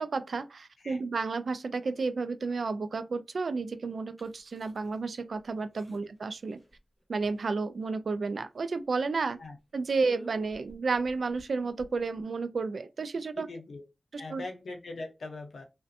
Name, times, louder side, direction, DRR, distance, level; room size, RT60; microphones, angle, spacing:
voice 1, 0.0-6.6 7.1-9.4 9.7-13.5 14.3-14.4, right 4 dB, 75° right, 0.3 m, -31 dB
sound 1, 4.2-5.0 5.4-5.5 5.7-6.2 6.6-7.0 7.3-7.9 8.3-8.4 8.6-8.7 9.2-9.5 9.9-12.2, equal, 5° right, 1.2 m, -52 dB
voice 2, 13.3-13.8 14.2-15.6, left 2 dB, 90° left, 0.7 m, -41 dB
2.5 x 2.1 x 2.6 m
wide cardioid pair, 65°, 0 cm